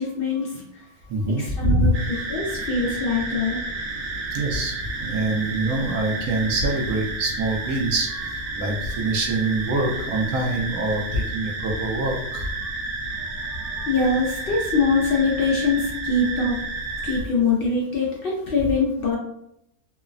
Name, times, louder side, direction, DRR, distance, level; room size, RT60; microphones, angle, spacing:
voice 1, 0.0-0.9 1.3-3.7 13.2-16.6 17.0-19.2, left 3 dB, 70° left, -4 dB, 0.5 m, -24 dB
voice 2, 1.1-1.9 4.3-8.1 8.6-12.4, right 2 dB, 85° right, -1 dB, 1.1 m, -25 dB
sound 1, 1.9-17.2, right 2 dB, 60° right, 0.8 m, -31 dB
3.1 x 2.0 x 2.4 m, 0.77 s
omnidirectional pair, 1.5 m